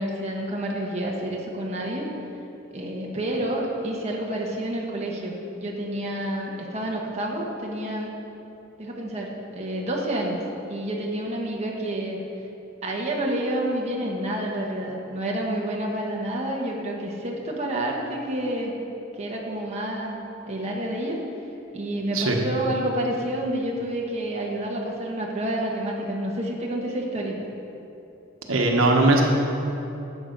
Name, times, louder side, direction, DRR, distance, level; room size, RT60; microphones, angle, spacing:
voice 1, 0.0-2.0 2.7-8.2 8.8-10.4 10.7-12.2 12.8-18.7 19.2-21.2 21.7-27.4, right 1 dB, 35° right, -2 dB, 1.3 m, -29 dB
voice 2, 28.5-29.2, right 2 dB, 85° right, 1 dB, 1.3 m, -19 dB
11.5 x 7.6 x 5.3 m, 2.9 s
head